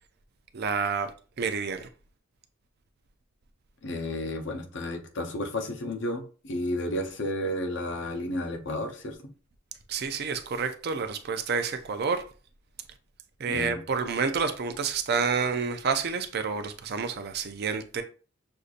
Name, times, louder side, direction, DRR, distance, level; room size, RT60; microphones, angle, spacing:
voice 1, 0.5-1.1 1.4-1.9 9.9-12.2 13.4-18.0, right 5 dB, 50° right, 0.5 m, -29 dB
voice 2, 3.8-9.2 13.5-13.8, left 1 dB, 60° left, 0.8 m, -32 dB
6.5 x 2.6 x 2.5 m
head